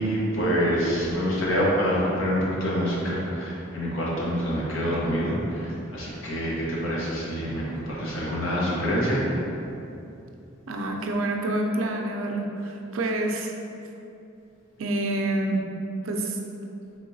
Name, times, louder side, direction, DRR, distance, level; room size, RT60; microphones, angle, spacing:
voice 1, 0.0-9.2, equal, 75° left, -6 dB, 1.1 m, -26 dB
voice 2, 10.7-13.5 14.8-15.6 16.0-16.4, right 1 dB, 75° right, 2 dB, 0.5 m, -27 dB
4.6 x 3.4 x 2.7 m, 2.7 s
head